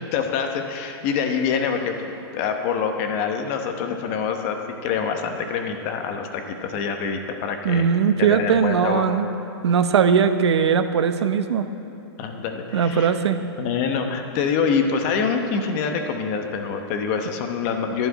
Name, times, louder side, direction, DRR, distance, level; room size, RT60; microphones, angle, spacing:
voice 1, 0.1-4.6 4.8-7.9 8.2-9.0 12.2-13.1 13.6-18.1, left 6 dB, 30° left, 5 dB, 0.9 m, -25 dB
voice 2, 7.6-9.3 9.6-11.7 12.7-13.4, right 6 dB, 80° right, 9 dB, 0.8 m, -19 dB
11.5 x 7.0 x 9.3 m, 2.9 s
hypercardioid pair, 165°, 14 cm